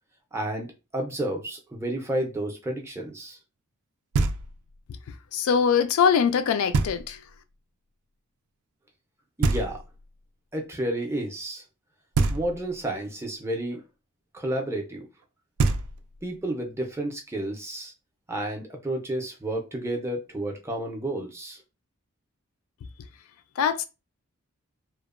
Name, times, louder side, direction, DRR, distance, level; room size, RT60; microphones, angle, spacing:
voice 1, 0.3-3.4 9.4-9.8 10.5-11.6 12.3-13.8 14.3-15.1 16.2-17.9 18.3-21.6, right 1 dB, 10° right, 0.4 m, -31 dB
Knock, 4.1-4.8 6.7-7.4 9.4-10.2 12.1-12.9 15.2-15.3 15.6-16.4, right 3 dB, 85° right, 0.3 m, -27 dB
voice 2, 5.3-7.2 23.6-23.8, left 7 dB, 75° left, 0.3 m, -22 dB
2.8 x 2.0 x 2.4 m
head